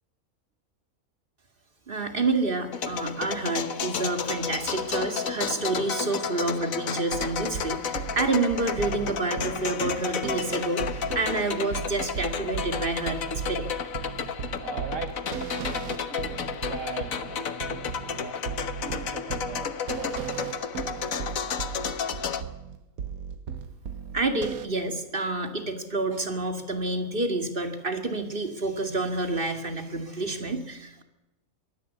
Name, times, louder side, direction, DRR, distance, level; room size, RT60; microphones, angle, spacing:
voice 1, 1.9-13.7 24.1-31.0, right 2 dB, 40° right, 6 dB, 2.6 m, -28 dB
sound 1, 2.7-22.4, left 6 dB, 70° left, 1.6 m, -32 dB
sound 2, 7.1-24.7, right 7 dB, 90° right, 1.5 m, -37 dB
voice 2, 14.6-18.4 18.8-21.7, right 6 dB, 65° right, 7 dB, 1.6 m, -41 dB
23.0 x 17.0 x 8.3 m, 0.98 s
omnidirectional pair, 1.5 m